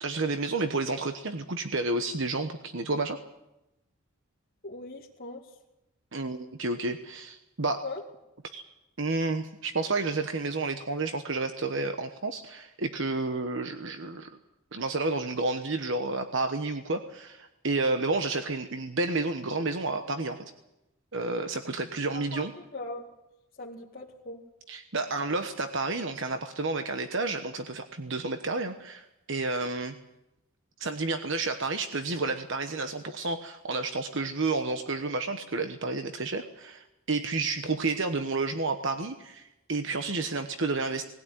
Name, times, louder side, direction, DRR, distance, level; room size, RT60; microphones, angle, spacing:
voice 1, 0.0-3.2 6.1-7.9 8.5-8.6 9.0-14.3 14.7-20.4 21.1-22.5 24.7-30.0 30.8-41.0, right 3 dB, 65° right, 7 dB, 1.2 m, -30 dB
voice 2, 4.6-5.4 7.8-8.0 22.1-22.4 22.7-23.1 23.6-24.4, left 2 dB, 45° left, -4 dB, 2.2 m, -39 dB
20.5 x 16.5 x 9.4 m, 0.91 s
head